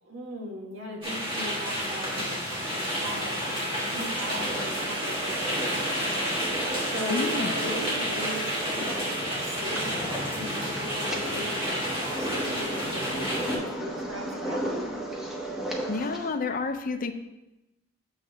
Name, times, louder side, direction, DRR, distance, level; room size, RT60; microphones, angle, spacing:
voice 1, 0.0-6.4 6.8-14.8, equal, 70° right, 0 dB, 1.3 m, -39 dB
sound 1, 1.0-13.6, equal, 25° right, 1.5 m, -30 dB
sound 2, 4.3-16.3, right 1 dB, ahead, 0.7 m, -35 dB
voice 2, 7.1-7.5 15.9-17.1, left 4 dB, 40° left, 8 dB, 0.4 m, -29 dB
7.3 x 3.2 x 5.4 m, 0.96 s
head